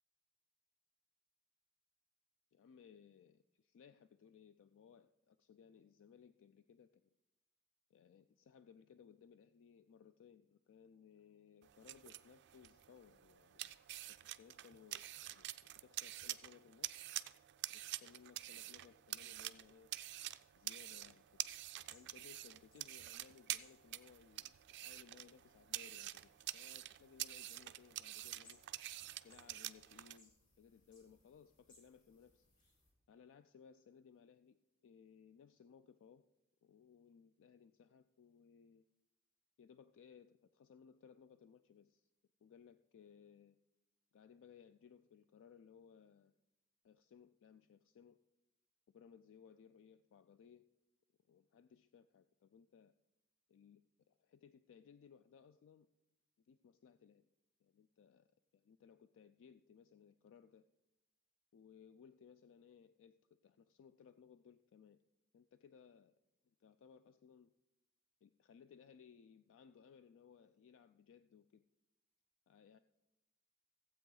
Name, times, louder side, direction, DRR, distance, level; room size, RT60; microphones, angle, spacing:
voice 1, 2.5-7.1 7.9-13.8 14.1-15.5 15.8-17.1 17.7-19.9 20.5-21.2 21.9-28.6 29.2-32.5 33.1-36.2 36.6-38.8 39.6-42.1 42.4-43.6 44.1-46.3 46.8-48.2 48.9-50.7 51.3-52.9 53.5-55.9 56.4-57.3 57.6-58.3 58.5-60.6 61.5-65.0 65.3-66.2 66.4-67.5 68.2-71.6 72.5-72.8, left 7 dB, 60° left, 12 dB, 0.3 m, -63 dB
sound 1, 11.6-30.2, right 15 dB, 50° right, 0.4 m, -47 dB
sound 2, 21.2-32.9, left 2 dB, 40° left, 4.1 m, -72 dB
15.0 x 7.9 x 3.9 m, 0.98 s
head